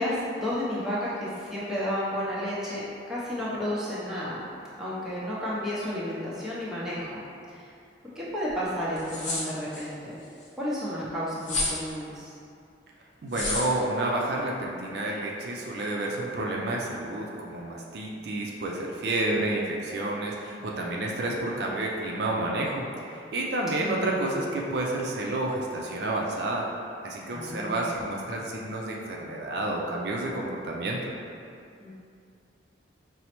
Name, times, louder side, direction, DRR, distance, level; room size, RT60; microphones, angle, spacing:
voice 1, 0.0-4.4 4.8-7.7 8.1-10.2 10.6-12.3 20.4-20.7 23.7-24.1 27.3-27.9 31.8-31.9, equal, ahead, -9 dB, 0.6 m, -32 dB
sound 1, 8.5-8.6 8.9-9.8 11.4-11.8 13.3-13.7, left 2 dB, 40° left, 0.6 m, -30 dB
voice 2, 13.2-26.7 27.0-31.1, right 2 dB, 60° right, -2 dB, 0.4 m, -30 dB
5.2 x 2.0 x 2.9 m, 2.5 s
head